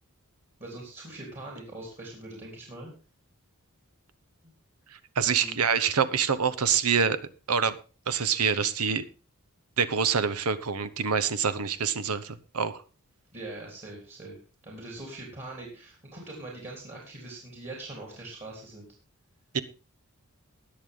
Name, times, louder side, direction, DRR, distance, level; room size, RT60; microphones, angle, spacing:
voice 1, 0.6-2.9 5.3-5.6 13.3-14.4 14.6-18.9, right 2 dB, 30° right, -1 dB, 3.5 m, -42 dB
voice 2, 5.2-7.2 7.5-7.7 8.1-9.0 9.8-12.8 19.5-19.6, right 6 dB, 85° right, 15 dB, 0.9 m, -26 dB
20.5 x 6.8 x 3.8 m, 0.34 s
head